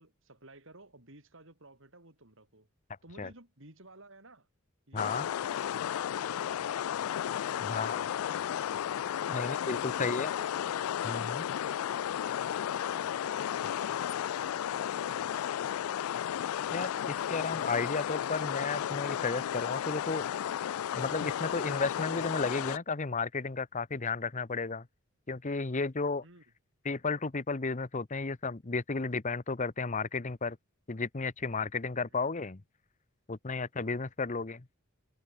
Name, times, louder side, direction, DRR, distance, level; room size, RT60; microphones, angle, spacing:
voice 1, 0.0-2.7 3.0-4.5 4.9-8.3 9.1-9.4 9.7-10.5 12.0-12.2 12.5-12.7 12.9-15.9 26.2-26.4 32.1-32.3, right 2 dB, 60° right, 6.2 m, -55 dB
voice 2, 4.9-5.2 7.7-8.0 9.3-10.3 11.0-11.5 16.7-20.2 20.9-24.9 25.3-26.2 26.8-30.6 30.9-32.6 33.3-34.6, left 4 dB, 35° left, 0.9 m, -33 dB
sound 1, 5.0-22.8, left 10 dB, 85° left, 0.3 m, -33 dB
head